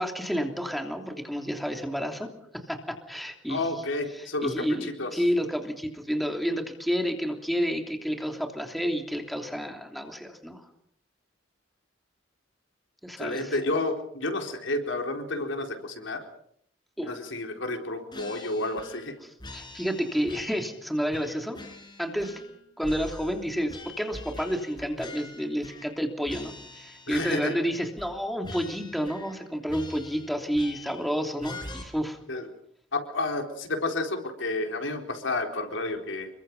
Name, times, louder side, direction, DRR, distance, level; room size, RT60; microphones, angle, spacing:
voice 1, 0.0-2.3 2.7-3.8 4.1-10.6 13.0-13.6 17.0-17.1 19.5-21.6 22.0-22.4 22.8-32.2, equal, ahead, 3 dB, 3.1 m, -30 dB
voice 2, 3.5-5.1 13.2-16.2 17.0-19.1 27.1-27.5 32.3-32.5 32.9-36.3, left 2 dB, 80° left, 4 dB, 4.2 m, -30 dB
sound 1, 18.1-19.1 19.4-20.8 21.1-22.6 22.8-26.0 26.3-27.6 28.0-28.2 28.4-29.4 29.7-31.1 31.4-31.8, left 2 dB, 25° left, 4.8 m, -44 dB
28.0 x 23.5 x 5.5 m, 0.70 s
head